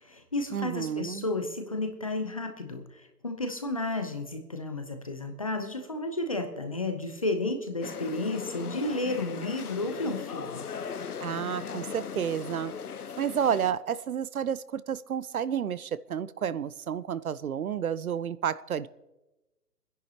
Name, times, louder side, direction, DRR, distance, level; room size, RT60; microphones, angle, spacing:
voice 1, 0.0-10.6, left 2 dB, 25° left, 0.6 m, -32 dB
voice 2, 0.5-1.2 11.2-12.7 13.2-18.9, right 8 dB, 65° right, 0.6 m, -31 dB
sound 1, 7.8-13.7, left 6 dB, 75° left, 1.0 m, -38 dB
28.0 x 10.5 x 2.9 m
hypercardioid pair, 160°, 46 cm